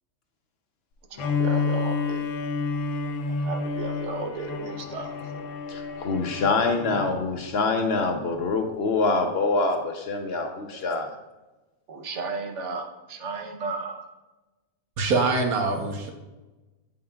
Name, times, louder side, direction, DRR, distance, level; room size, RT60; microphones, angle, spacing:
voice 1, 1.1-2.2 3.3-5.1 11.9-14.1, right 3 dB, 60° right, 4 dB, 1.0 m, -34 dB
Bowed string instrument, 1.2-7.2, left 4 dB, 75° left, 1.0 m, -29 dB
voice 2, 5.7-11.1, left 3 dB, 55° left, 4 dB, 0.7 m, -25 dB
voice 3, 15.0-16.1, right 3 dB, 80° right, 3 dB, 1.4 m, -24 dB
8.6 x 5.4 x 2.3 m, 1.1 s
omnidirectional pair, 1.5 m